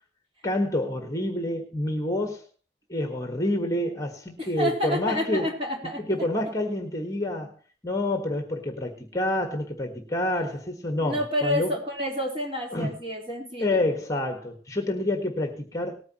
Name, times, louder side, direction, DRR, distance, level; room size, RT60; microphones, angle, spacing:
voice 1, 0.4-2.4 2.9-5.5 6.1-7.5 7.8-11.7 12.7-12.9 13.6-16.0, left 1 dB, 20° left, 4 dB, 1.5 m, -28 dB
voice 2, 4.4-6.0 11.0-13.9, equal, 30° right, -1 dB, 3.8 m, -29 dB
19.0 x 9.5 x 3.0 m, 0.37 s
head